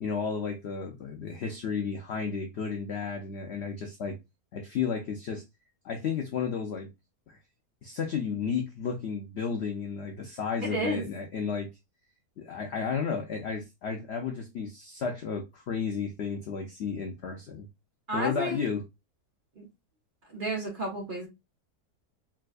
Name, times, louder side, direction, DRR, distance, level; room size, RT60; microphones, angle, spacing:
voice 1, 0.0-4.2 4.5-5.4 5.8-6.9 7.3-7.4 7.8-11.7 12.4-17.7 18.1-18.8, left 6 dB, 85° left, 0.5 m, -33 dB
voice 2, 10.6-11.0 18.1-18.7 19.6-19.7 20.3-21.3, right 1 dB, 40° right, 0.8 m, -32 dB
3.9 x 2.3 x 2.4 m
omnidirectional pair, 1.7 m